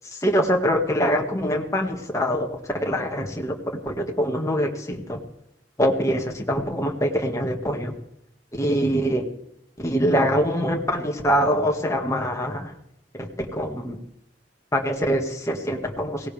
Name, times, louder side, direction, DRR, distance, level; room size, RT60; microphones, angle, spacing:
voice 1, 0.0-3.6 3.8-5.2 5.8-8.0 8.5-9.2 9.8-12.7 13.2-14.0 14.7-16.3, equal, 15° left, 2 dB, 1.9 m, -24 dB
18.0 x 18.0 x 3.5 m, 0.79 s
head